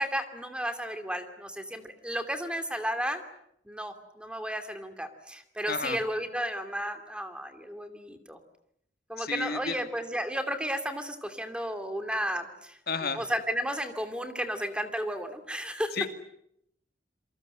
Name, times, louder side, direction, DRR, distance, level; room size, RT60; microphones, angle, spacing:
voice 1, 0.0-3.2 3.7-8.4 9.1-12.8 13.1-16.0, equal, 5° right, 7 dB, 2.7 m, -33 dB
voice 2, 5.7-6.0 9.2-9.8 12.9-13.2 15.9-16.1, left 5 dB, 60° left, 7 dB, 2.5 m, -31 dB
28.5 x 24.0 x 7.8 m, 0.73 s
head